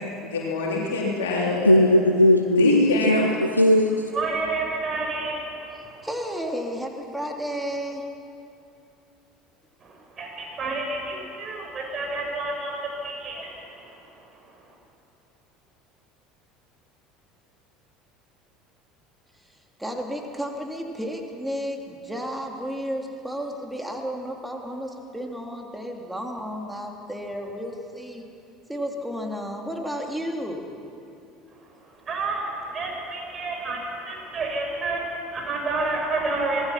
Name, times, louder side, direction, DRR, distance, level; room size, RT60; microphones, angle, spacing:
voice 1, 0.0-1.9 2.6-3.2, left 3 dB, 70° left, -3 dB, 3.4 m, -25 dB
voice 2, 1.6-3.3 3.6-4.1, left 1 dB, 90° left, 6 dB, 0.7 m, -18 dB
voice 3, 4.1-6.0 9.8-14.0 14.3-14.4 32.0-36.7, right 3 dB, 35° right, 0 dB, 6.8 m, -30 dB
voice 4, 6.0-8.0 19.8-28.2 28.7-30.6, equal, 5° right, 1 dB, 3.1 m, -32 dB
25.5 x 19.0 x 5.9 m, 2.6 s
figure-of-eight pair, 65°, 0 cm